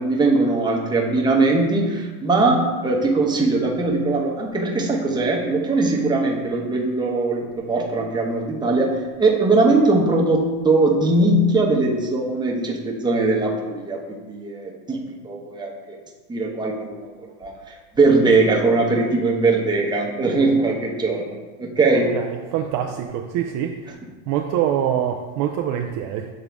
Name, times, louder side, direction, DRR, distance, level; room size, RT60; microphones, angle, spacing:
voice 1, 0.0-8.9 9.2-15.0 15.2-16.0 16.3-17.1 17.4-17.6 18.0-22.1, right 3 dB, 10° right, -1 dB, 0.9 m, -20 dB
voice 2, 22.1-24.0 24.3-26.3, right 10 dB, 45° right, 3 dB, 0.5 m, -25 dB
7.6 x 3.7 x 3.5 m, 1.3 s
supercardioid pair, 125°, 46 cm